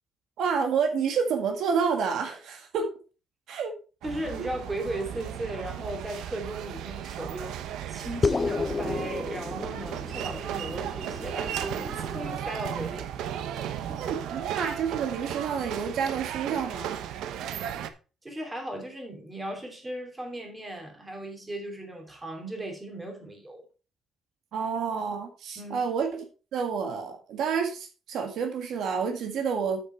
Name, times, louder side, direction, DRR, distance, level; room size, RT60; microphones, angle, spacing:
voice 1, 0.4-2.9 3.5-3.7 14.0-17.0 24.5-26.2 26.5-29.8, right 6 dB, 70° right, 1.8 m, -29 dB
voice 2, 4.0-7.6 7.9-13.1 13.5-14.2 18.2-23.6 25.6-25.8, right 1 dB, 15° right, 2.8 m, -37 dB
sound 1, 4.0-17.9, right 10 dB, 85° right, 0.8 m, -35 dB
sound 2, 8.2-13.0, left 4 dB, 25° left, 0.4 m, -32 dB
8.0 x 6.9 x 4.5 m
cardioid pair, 125°, 0 cm